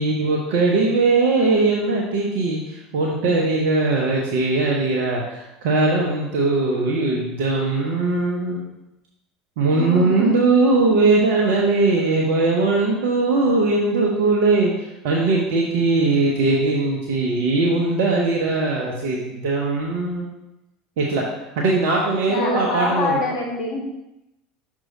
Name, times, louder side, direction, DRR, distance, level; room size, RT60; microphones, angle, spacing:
voice 1, 0.0-8.6 9.6-20.3 21.0-21.2 21.5-23.2, right 3 dB, 65° right, -3 dB, 0.9 m, -20 dB
voice 2, 9.7-10.4 22.3-23.8, left 3 dB, 45° left, -3 dB, 2.2 m, -25 dB
6.3 x 3.7 x 5.0 m, 0.92 s
figure-of-eight pair, 75°, 0 cm